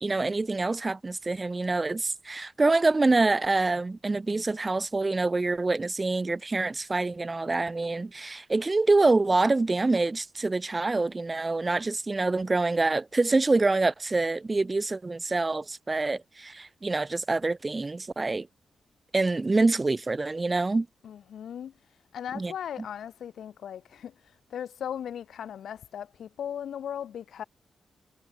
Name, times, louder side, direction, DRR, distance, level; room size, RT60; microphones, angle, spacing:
voice 1, 0.0-18.5 19.1-20.9 22.3-22.5, right 3 dB, 25° right, 0.4 m, -26 dB
voice 2, 21.0-21.7 22.1-24.1 24.5-27.4, left 9 dB, 85° left, 3.0 m, -37 dB
wide cardioid pair, 110°, 0 cm